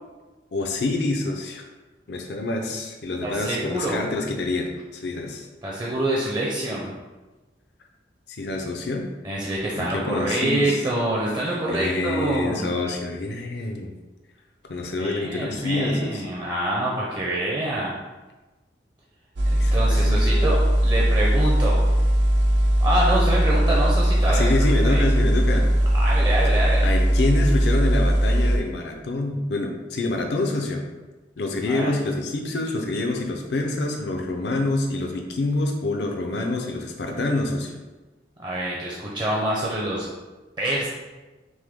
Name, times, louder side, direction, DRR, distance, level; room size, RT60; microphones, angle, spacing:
voice 1, 0.5-1.6 2.1-5.5 8.3-9.0 9.8-10.8 11.7-13.9 14.7-16.2 19.6-20.5 24.3-25.7 26.8-30.8 31.4-37.8, left 2 dB, 65° left, 2 dB, 0.5 m, -26 dB
voice 2, 3.2-4.0 5.6-6.9 9.2-12.6 15.0-17.9 19.5-21.8 22.8-25.0 26.0-26.9 31.7-31.9 38.4-40.1 40.6-40.9, right 1 dB, 25° right, -4 dB, 0.6 m, -26 dB
sound 1, 19.4-28.6, right 1 dB, 85° right, 0.6 m, -19 dB
6.2 x 2.1 x 3.5 m, 1.2 s
head